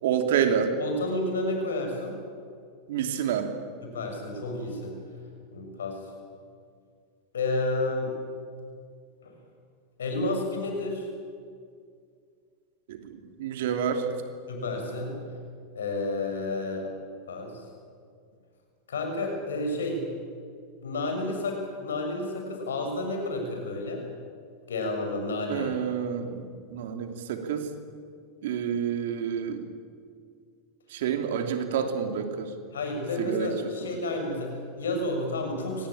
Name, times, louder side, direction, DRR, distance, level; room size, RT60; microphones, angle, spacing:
voice 1, 0.0-0.7 2.9-3.5 12.9-14.1 25.5-27.7 28.4-29.6 30.9-32.5 33.2-33.5, right 8 dB, 70° right, 6 dB, 3.0 m, -28 dB
voice 2, 0.8-2.2 3.8-4.9 5.5-6.0 7.3-8.1 9.2-9.3 10.0-11.1 14.5-15.1 15.7-16.9 17.3-17.6 18.9-20.1 20.8-24.0 24.7-25.7 32.7-35.9, left 2 dB, 85° left, 3 dB, 6.5 m, -30 dB
24.5 x 19.0 x 8.8 m, 2.2 s
hypercardioid pair, 95°, 0 cm